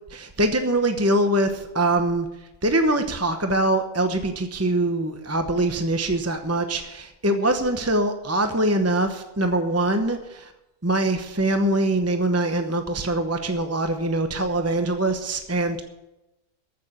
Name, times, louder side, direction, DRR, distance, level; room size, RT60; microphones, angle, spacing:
voice 1, 0.1-10.5 10.8-15.8, right 1 dB, 15° right, 6 dB, 0.8 m, -23 dB
14.5 x 6.9 x 8.7 m, 0.96 s
omnidirectional pair, 1.4 m